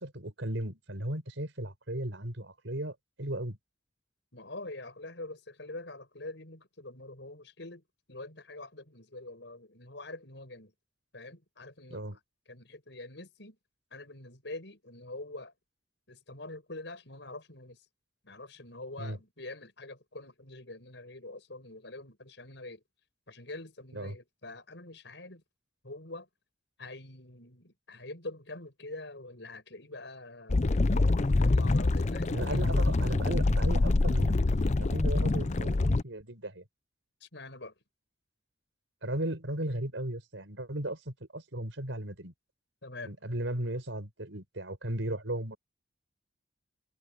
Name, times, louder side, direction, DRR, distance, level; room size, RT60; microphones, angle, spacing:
voice 1, 0.0-3.6 11.9-12.2 19.0-19.2 23.9-24.2 32.3-34.5 34.8-36.6 39.0-42.3 43.0-45.6, right 1 dB, 90° right, 4.8 m, -36 dB
voice 2, 4.3-10.7 11.1-12.2 12.5-13.6 13.9-15.5 16.1-17.8 18.2-22.8 23.3-25.4 25.8-26.3 26.8-31.0 31.5-32.9 37.2-37.7 42.8-43.1, left 2 dB, 70° left, 7.0 m, -45 dB
sound 1, 30.5-36.0, left 2 dB, 40° left, 0.6 m, -25 dB
head